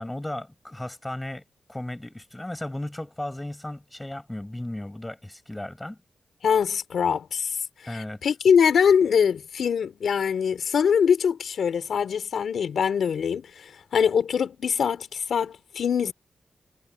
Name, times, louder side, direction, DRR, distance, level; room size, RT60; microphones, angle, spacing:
voice 1, 0.0-1.4 1.7-6.0 7.9-8.2, left 1 dB, 10° left, 7.9 m, -35 dB
voice 2, 6.4-7.6 7.9-16.1, left 7 dB, 80° left, 3.7 m, -23 dB
cardioid pair, 75°, 0 cm